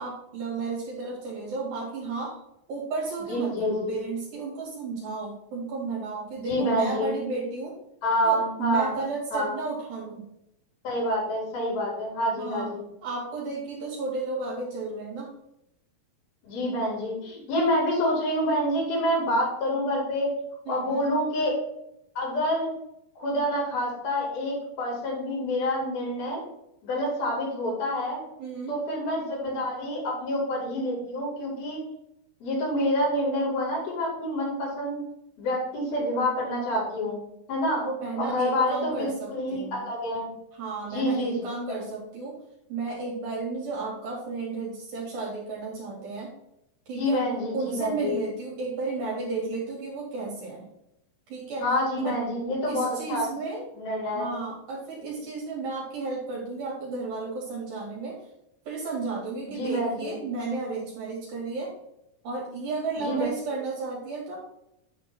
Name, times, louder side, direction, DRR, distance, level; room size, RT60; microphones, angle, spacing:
voice 1, 0.0-2.4 2.7-7.8 8.2-10.2 12.4-12.7 13.0-15.3 20.7-21.2 28.4-28.8 37.8-39.9 40.6-42.4 42.7-46.3 46.9-47.2 47.5-50.7 51.3-51.7 52.0-52.2 52.7-53.7 54.1-58.2 58.7-61.7 62.2-64.4, right 3 dB, 70° right, -5 dB, 4.0 m, -33 dB
voice 2, 3.3-4.0 6.4-7.1 8.0-9.0 9.3-9.5 10.8-12.9 16.4-20.3 20.7-21.5 22.2-22.7 23.2-26.4 26.8-28.2 28.7-31.8 32.4-35.0 35.4-37.2 37.5-37.9 38.2-40.3 40.8-41.8 47.0-48.2 51.6-53.3 53.8-54.3 59.5-60.2 63.0-63.3, equal, 75° left, -4 dB, 5.8 m, -27 dB
10.0 x 3.8 x 6.3 m, 0.81 s
omnidirectional pair, 4.3 m